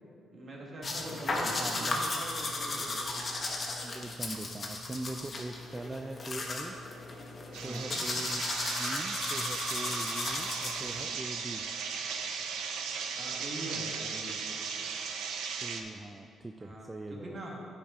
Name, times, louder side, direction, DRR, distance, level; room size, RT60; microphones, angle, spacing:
voice 1, 0.3-3.8 7.6-8.1 11.0-11.2 13.2-14.4 16.6-17.6, right 1 dB, 40° right, -2 dB, 1.7 m, -44 dB
sound 1, 0.8-11.0, left 2 dB, 40° left, 1.0 m, -35 dB
voice 2, 1.4-2.3 3.8-6.8 7.6-8.4 8.8-11.6 15.6-17.4, right 2 dB, 15° right, 5 dB, 0.3 m, -42 dB
sound 2, 7.5-15.8, right 6 dB, 80° right, 0.6 m, -37 dB
10.0 x 4.7 x 4.2 m, 2.6 s
cardioid pair, 90°, 0 cm